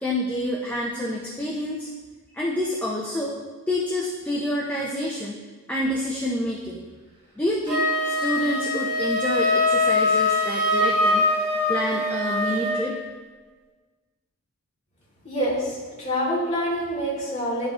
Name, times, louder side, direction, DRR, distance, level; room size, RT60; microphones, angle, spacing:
voice 1, 0.0-1.9 2.3-3.4 3.7-5.4 5.7-6.8 7.4-11.3 11.7-13.0, left 1 dB, 10° left, -4 dB, 0.6 m, -28 dB
Wind instrument woodwind instrument, 7.7-12.9, left 2 dB, 25° right, 2.2 m, -23 dB
voice 2, 15.2-17.7, equal, 30° left, -5 dB, 2.1 m, -26 dB
11.5 x 4.9 x 2.5 m, 1.4 s
head